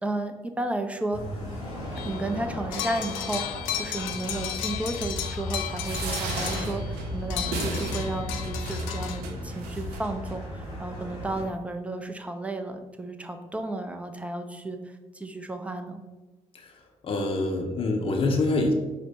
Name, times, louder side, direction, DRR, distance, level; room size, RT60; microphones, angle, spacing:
voice 1, 0.0-1.2 2.0-14.8 15.1-16.0, right 2 dB, 5° right, 6 dB, 0.5 m, -33 dB
sound 1, 1.1-11.4, left 1 dB, 85° left, 1.1 m, -35 dB
sound 2, 2.0-2.3 2.7-6.9 7.3-9.2, left 10 dB, 70° left, 0.4 m, -34 dB
sound 3, 5.8-10.4 11.0-11.1 11.4-11.5, right 4 dB, 65° right, 0.5 m, -37 dB
voice 2, 17.0-18.7, left 2 dB, 30° left, 2 dB, 0.7 m, -25 dB
5.0 x 2.1 x 4.3 m, 1.2 s
figure-of-eight pair, 45°, 18 cm